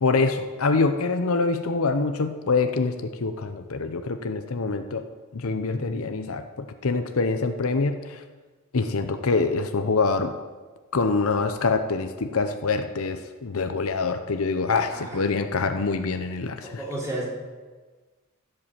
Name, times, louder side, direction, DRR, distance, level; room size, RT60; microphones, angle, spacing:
voice 1, 0.0-5.1 5.3-8.2 8.7-10.3 10.9-16.8, left 4 dB, 70° left, 8 dB, 0.7 m, -25 dB
voice 2, 16.6-17.3, right 1 dB, 15° right, -4 dB, 2.9 m, -32 dB
15.0 x 5.5 x 7.2 m, 1.3 s
head